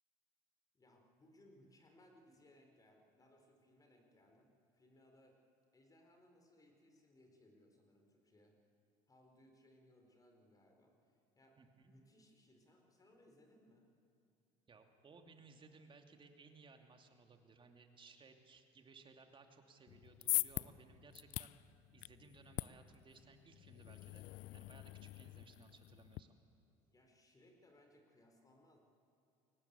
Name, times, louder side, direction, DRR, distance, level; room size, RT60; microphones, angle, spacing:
voice 1, 0.7-5.4 5.7-8.6 9.1-13.9 26.9-28.8, left 1 dB, 25° left, 3 dB, 4.5 m, -67 dB
voice 2, 11.6-11.9 14.7-21.6 21.9-24.3 24.5-26.4, right 4 dB, 35° right, 5 dB, 2.6 m, -62 dB
sound 1, 19.9-26.2, left 18 dB, 65° left, 0.5 m, -43 dB
22.5 x 18.5 x 8.4 m, 2.6 s
supercardioid pair, 85°, 15 cm